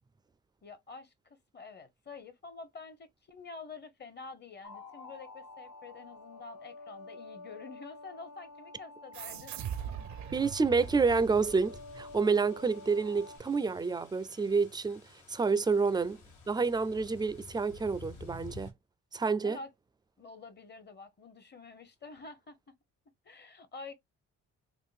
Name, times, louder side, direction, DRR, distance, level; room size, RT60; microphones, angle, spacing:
voice 1, 0.6-9.8 19.4-19.7 20.2-22.8 23.2-23.9, left 4 dB, 35° left, 0.8 m, -48 dB
sound 1, 4.6-13.4, left 3 dB, 65° left, 0.9 m, -49 dB
sound 2, 9.1-12.2, right 9 dB, 70° right, 0.5 m, -41 dB
voice 2, 10.3-15.0 15.3-16.2 16.5-18.7 19.1-19.6, right 4 dB, 15° right, 0.3 m, -28 dB
sound 3, 10.8-18.7, left 3 dB, 80° left, 1.6 m, -51 dB
3.6 x 2.5 x 2.4 m
cardioid pair, 90°, 30 cm